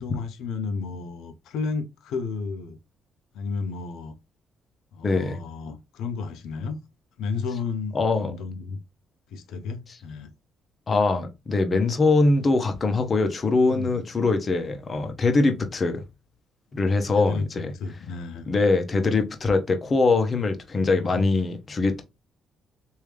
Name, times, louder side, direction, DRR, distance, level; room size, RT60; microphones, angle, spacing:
voice 1, 0.0-2.8 3.3-4.1 4.9-6.8 7.2-8.8 9.3-10.3 13.7-14.0 17.2-17.5 17.7-18.5 20.9-21.3, left 4 dB, 85° left, 0.6 m, -32 dB
voice 2, 5.0-5.4 7.9-8.3 10.9-16.0 16.7-17.7 18.5-22.0, left 3 dB, 35° left, 0.8 m, -22 dB
3.4 x 2.7 x 3.2 m
cardioid pair, 90°, 0 cm